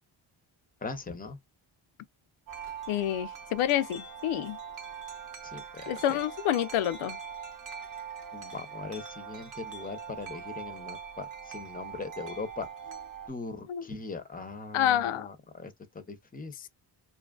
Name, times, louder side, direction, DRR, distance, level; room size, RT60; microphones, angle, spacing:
voice 1, 0.8-1.4 5.4-6.2 8.3-12.7 13.3-16.7, left 4 dB, 20° left, 0.7 m, -40 dB
Wind chime, 2.5-13.3, right 7 dB, 40° right, 0.8 m, -42 dB
voice 2, 2.9-4.6 5.9-7.2 13.7-13.8 14.7-15.3, left 11 dB, 75° left, 0.6 m, -28 dB
2.7 x 2.5 x 2.3 m
cardioid pair, 85°, 50 cm